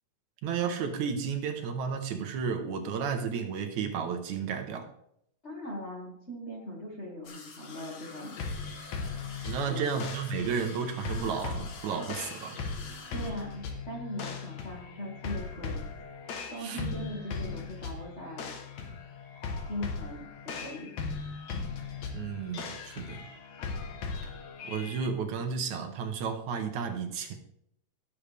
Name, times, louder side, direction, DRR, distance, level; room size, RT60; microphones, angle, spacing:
voice 1, 0.4-4.9 9.5-12.6 16.6-16.8 22.1-23.2 24.2-24.3 24.6-27.3, right 6 dB, 75° right, 5 dB, 2.4 m, -33 dB
voice 2, 5.4-8.4 9.6-10.0 13.1-15.8 16.5-18.5 19.7-20.9, equal, 25° left, -3 dB, 1.9 m, -40 dB
sound 1, 7.2-13.3, left 4 dB, 50° left, 1.8 m, -48 dB
sound 2, 8.4-25.1, left 4 dB, 65° left, 2.5 m, -38 dB
18.0 x 7.0 x 3.5 m, 0.73 s
omnidirectional pair, 3.5 m